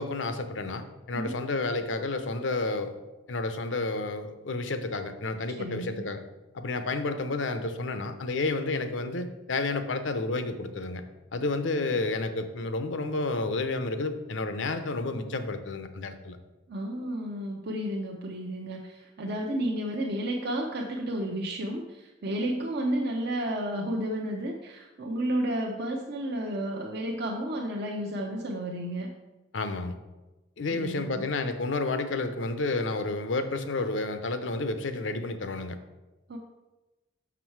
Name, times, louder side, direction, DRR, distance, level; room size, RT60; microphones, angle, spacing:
voice 1, 0.0-2.9 3.3-6.2 6.5-11.0 11.3-16.4 29.5-29.9 30.6-35.8, left 3 dB, 85° left, 9 dB, 0.7 m, -30 dB
voice 2, 5.6-6.0 16.7-29.1 30.7-31.2 36.3-36.4, right 1 dB, 60° right, 0 dB, 0.7 m, -32 dB
6.3 x 6.0 x 4.6 m, 1.1 s
head